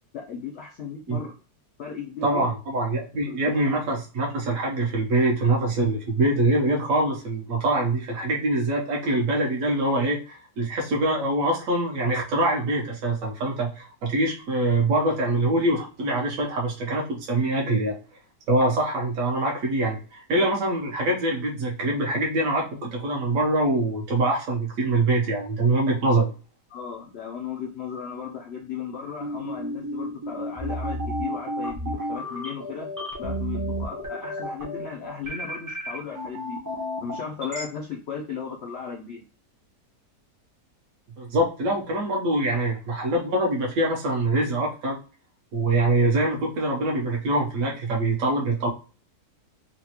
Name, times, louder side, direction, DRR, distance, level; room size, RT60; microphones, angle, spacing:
voice 1, 0.1-1.3 1.8-2.5 3.3-3.6 26.7-32.9 33.2-36.6 37.0-39.3, left 6 dB, 75° left, 0 dB, 0.6 m, -36 dB
voice 2, 2.2-18.0 18.5-26.3 41.2-45.0 45.5-48.7, right 2 dB, 60° right, -1 dB, 1.1 m, -24 dB
sound 1, 29.2-37.6, equal, 25° right, 0.4 m, -31 dB
4.0 x 2.2 x 2.8 m, 0.35 s
omnidirectional pair, 1.7 m